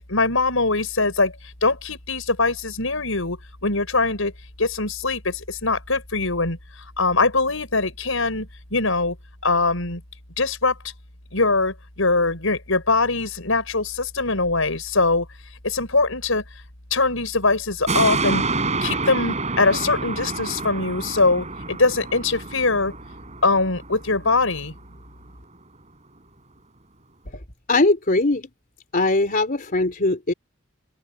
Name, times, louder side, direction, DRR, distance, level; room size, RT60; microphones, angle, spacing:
voice 1, 0.0-1.3 1.6-4.3 4.6-6.6 7.0-9.2 9.4-10.0 10.4-10.8 11.3-15.3 15.6-16.4 16.9-18.4 18.8-22.9 23.4-24.7, left 3 dB, 70° left, 6.7 m, -22 dB
sound 1, 17.9-24.5 24.9-25.0, right 3 dB, 35° right, 5.4 m, -28 dB
voice 2, 27.3-28.5 28.9-30.3, left 2 dB, 45° left, 3.4 m, -21 dB
open air
head